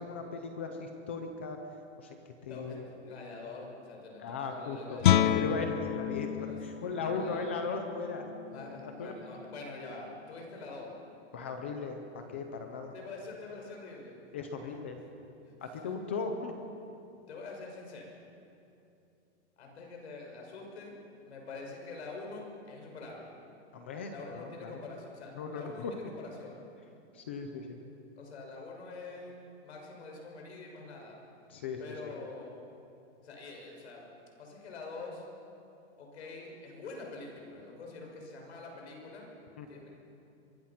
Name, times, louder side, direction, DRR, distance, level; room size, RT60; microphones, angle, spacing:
voice 1, 0.0-1.6 2.0-2.9 4.2-8.3 8.5-9.1 11.3-13.0 14.3-15.0 15.6-16.5 23.7-24.7 25.3-25.9 27.1-27.8 31.5-31.8 39.6-39.7, left 4 dB, 10° left, 5 dB, 0.4 m, -38 dB
voice 2, 2.5-5.4 6.4-7.5 8.5-10.9 12.9-14.2 15.4-15.5 17.3-18.1 19.6-23.3 24.1-26.6 28.2-29.4 29.6-31.2 31.8-32.6 33.2-34.0 34.4-35.3 36.0-39.3 39.7-39.9, left 3 dB, 75° left, 0 dB, 6.2 m, -45 dB
Guitar, 5.0-10.6, left 10 dB, 50° left, 0.8 m, -31 dB
24.0 x 21.5 x 5.9 m, 2.7 s
supercardioid pair, 180°, 33 cm